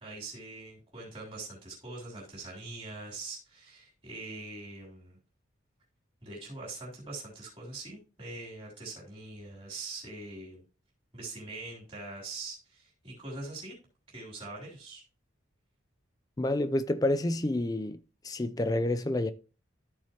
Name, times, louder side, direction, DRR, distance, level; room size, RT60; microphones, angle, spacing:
voice 1, 0.0-5.2 6.2-10.6 11.1-13.7 14.1-15.0, right 2 dB, 25° right, 3.3 m, -43 dB
voice 2, 16.4-18.0 18.2-19.3, left 1 dB, 20° left, 0.4 m, -28 dB
13.5 x 4.7 x 3.0 m
head